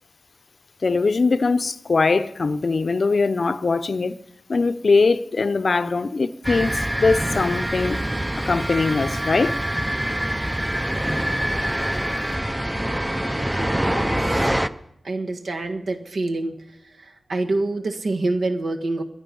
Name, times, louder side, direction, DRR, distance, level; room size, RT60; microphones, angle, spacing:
voice 1, 0.8-4.2 4.5-8.0 8.4-9.6, left 4 dB, 55° left, 0.6 m, -21 dB
sound 1, 6.4-14.7, right 1 dB, 10° right, 0.5 m, -25 dB
voice 2, 13.4-14.5 15.0-19.0, right 2 dB, 75° right, 1.6 m, -27 dB
22.0 x 10.0 x 5.3 m
wide cardioid pair, 115°, 0 cm